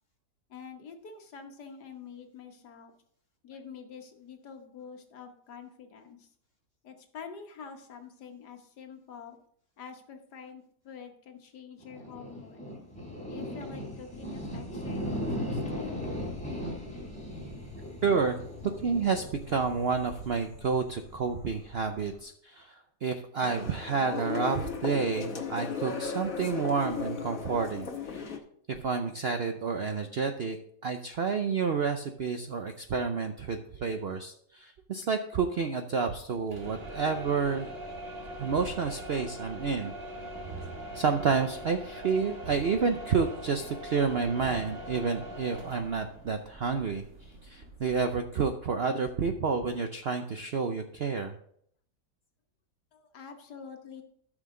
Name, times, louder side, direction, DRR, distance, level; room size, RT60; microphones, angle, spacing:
voice 1, 0.5-2.9 3.4-6.3 6.8-9.4 9.8-12.7 13.3-16.0 52.9-54.0, left 6 dB, 75° left, 5 dB, 1.7 m, -46 dB
sound 1, 11.8-22.2, equal, 5° left, 3.4 m, -38 dB
voice 2, 18.0-18.4 18.8-28.4 28.7-30.6 30.8-37.7 38.4-39.9 40.9-47.0 47.4-51.4, right 5 dB, 65° right, 6 dB, 0.6 m, -30 dB
sound 2, 23.4-28.4, left 5 dB, 55° left, 1.5 m, -36 dB
sound 3, 36.4-48.3, right 1 dB, 35° right, 1.7 m, -42 dB
13.0 x 6.4 x 3.7 m, 0.65 s
omnidirectional pair, 1.8 m